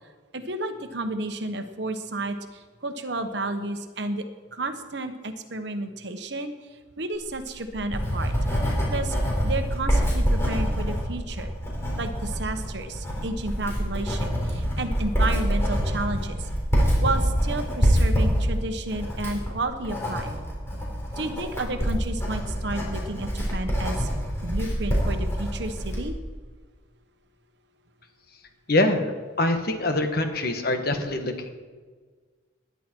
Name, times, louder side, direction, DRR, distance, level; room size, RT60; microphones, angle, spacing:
voice 1, 0.3-4.2 4.5-8.3 8.7-9.2 9.4-11.5 11.9-16.5 17.0-20.3 21.2-24.1 24.4-26.2, right 2 dB, 60° right, 8 dB, 1.1 m, -32 dB
Writing, 7.3-26.1, equal, 15° left, 4.0 m, -26 dB
voice 2, 28.7-29.1 29.4-31.5, left 2 dB, 50° left, 6 dB, 1.5 m, -24 dB
19.5 x 10.0 x 4.6 m, 1.5 s
head